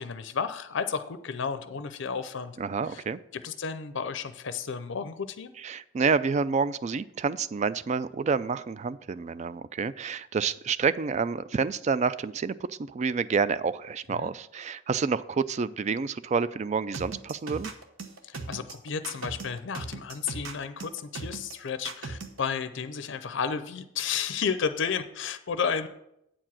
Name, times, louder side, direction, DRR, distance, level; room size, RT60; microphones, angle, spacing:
voice 1, 0.0-2.6 2.9-3.0 3.3-5.5 14.2-14.3 18.2-25.9, left 6 dB, 65° left, 11 dB, 0.5 m, -32 dB
voice 2, 2.6-3.2 5.6-17.7, right 5 dB, 35° right, 16 dB, 0.3 m, -28 dB
sound 1, 16.9-22.4, right 3 dB, 80° right, 1.0 m, -38 dB
8.7 x 4.7 x 7.3 m, 0.80 s
head